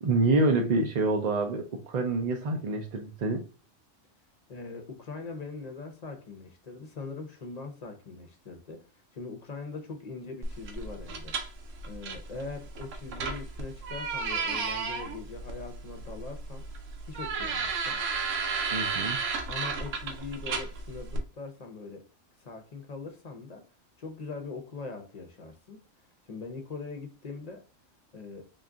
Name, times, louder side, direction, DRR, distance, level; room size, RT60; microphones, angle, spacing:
voice 1, 0.0-3.4 18.7-19.2, right 2 dB, 55° right, 3 dB, 0.5 m, -27 dB
voice 2, 4.5-8.8 9.1-11.4 11.8-16.6 17.0-18.0 19.5-22.0 22.4-23.6 24.0-25.8 26.3-27.6 28.1-28.5, left 4 dB, 45° left, 5 dB, 0.6 m, -41 dB
sound 1, 10.4-21.2, right 4 dB, 80° right, 1.0 m, -34 dB
3.7 x 2.4 x 3.6 m, 0.33 s
omnidirectional pair, 1.3 m